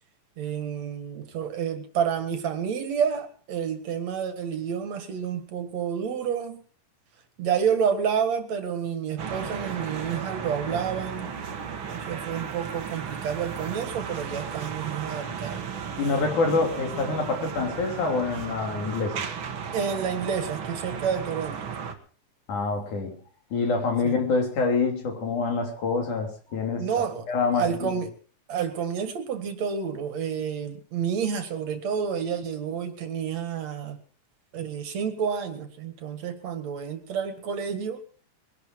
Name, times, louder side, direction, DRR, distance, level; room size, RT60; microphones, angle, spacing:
voice 1, 0.4-6.6 7.4-11.3 11.6-15.7 19.7-21.7 24.0-24.2 26.8-28.1 28.5-34.0 34.5-38.0, right 7 dB, 65° right, 9 dB, 2.9 m, -29 dB
sound 1, 9.2-21.9, right 6 dB, 50° right, 2.1 m, -35 dB
voice 2, 16.0-19.1 22.5-23.2 23.5-26.8 27.3-28.0, left 4 dB, 80° left, 3 dB, 4.6 m, -26 dB
22.0 x 12.0 x 4.6 m, 0.41 s
omnidirectional pair, 3.4 m